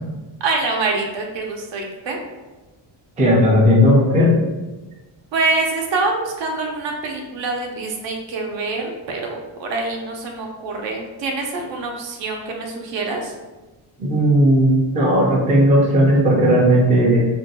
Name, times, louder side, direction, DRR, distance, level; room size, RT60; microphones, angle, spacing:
voice 1, 0.4-2.2 5.3-13.3, right 3 dB, 65° right, 1 dB, 0.7 m, -25 dB
voice 2, 3.2-4.3 14.0-17.3, equal, 15° right, -4 dB, 0.4 m, -15 dB
2.6 x 2.2 x 4.0 m, 1.2 s
cardioid pair, 155°, 48 cm